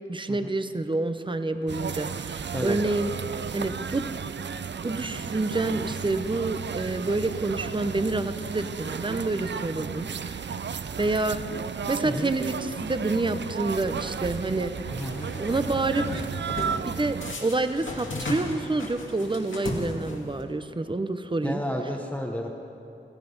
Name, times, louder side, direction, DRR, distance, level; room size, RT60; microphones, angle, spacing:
voice 1, 0.1-3.1 3.5-4.1 4.8-10.5 11.0-11.4 11.9-14.7 15.4-16.3 16.8-21.6, right 2 dB, 25° right, 10 dB, 0.7 m, -28 dB
sound 1, 1.7-17.4, right 6 dB, 65° right, 0.4 m, -34 dB
voice 2, 14.9-15.3 21.4-22.5, equal, 5° left, 0 dB, 0.9 m, -31 dB
sound 2, 15.0-15.6 16.0-16.8 17.2-20.4, left 1 dB, 85° left, 2.3 m, -35 dB
16.5 x 14.5 x 5.3 m, 2.9 s
wide cardioid pair, 85°, 20 cm